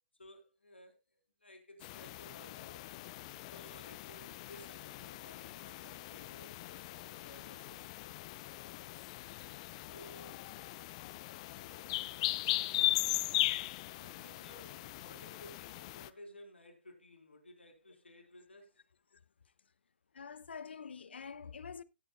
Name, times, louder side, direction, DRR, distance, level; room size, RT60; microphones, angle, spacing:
voice 1, 0.2-2.8 3.4-7.9 9.9-10.4 13.9-18.8, left 1 dB, 90° left, 3.6 m, -56 dB
sound 1, 1.8-16.1, left 17 dB, 35° left, 0.6 m, -39 dB
voice 2, 20.1-21.8, left 6 dB, 70° left, 0.7 m, -46 dB
17.0 x 8.7 x 2.3 m
figure-of-eight pair, 130°, 6 cm